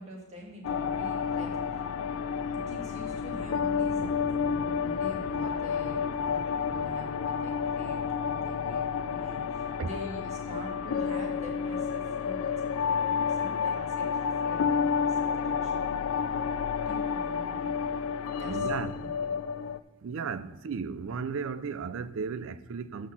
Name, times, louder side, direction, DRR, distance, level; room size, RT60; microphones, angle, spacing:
voice 1, 0.0-1.5 2.3-12.8 13.1-15.8 16.9-17.7 18.4-19.3, equal, 30° right, 1.8 m, -45 dB
sound 1, 0.6-19.8, left 6 dB, 65° left, 0.3 m, -30 dB
voice 2, 18.5-19.0 20.0-23.1, right 5 dB, 60° right, 0.4 m, -35 dB
6.1 x 5.8 x 7.1 m
head